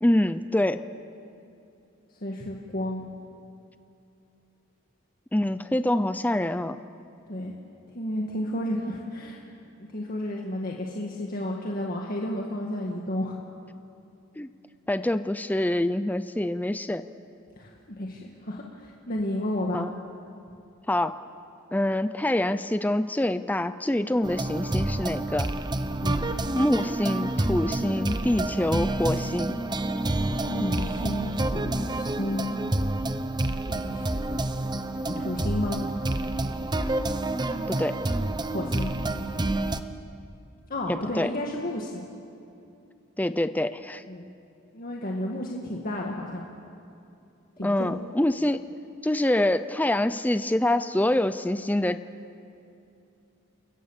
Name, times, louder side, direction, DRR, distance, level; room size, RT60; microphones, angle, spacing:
voice 1, 0.0-0.8 5.3-6.8 14.4-14.5 14.9-17.1 19.7-19.9 20.9-21.2 21.7-25.5 26.6-29.6 37.7-38.0 40.9-41.3 43.2-44.0 47.6-48.6 49.0-52.1, left 1 dB, 10° left, 11 dB, 0.5 m, -25 dB
voice 2, 2.2-3.1 7.3-7.5 7.9-9.4 9.9-13.4 17.6-19.9 26.0-26.2 30.4-32.6 33.7-34.2 34.6-34.7 35.1-35.8 38.5-38.9 40.7-42.1 44.1-44.3 44.7-46.5 47.6-48.0, left 1 dB, 45° left, -1 dB, 1.9 m, -32 dB
sound 1, 24.2-39.8, right 2 dB, 20° right, 0.8 m, -28 dB
29.5 x 22.0 x 7.3 m, 2.6 s
head